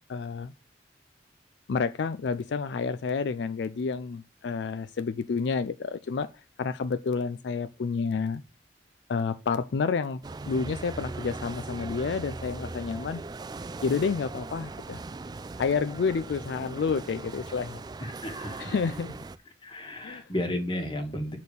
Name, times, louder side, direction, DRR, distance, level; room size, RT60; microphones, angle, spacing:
voice 1, 0.1-0.5 1.7-6.3 6.6-8.4 9.1-13.2 13.8-15.0 15.6-17.8 18.6-19.1 20.0-20.3, left 5 dB, 70° left, 0.4 m, -29 dB
sound 1, 10.2-19.4, right 3 dB, 20° right, 0.3 m, -39 dB
voice 2, 18.0-18.7 19.6-21.4, left 1 dB, 25° left, 1.5 m, -33 dB
8.2 x 4.3 x 6.8 m
head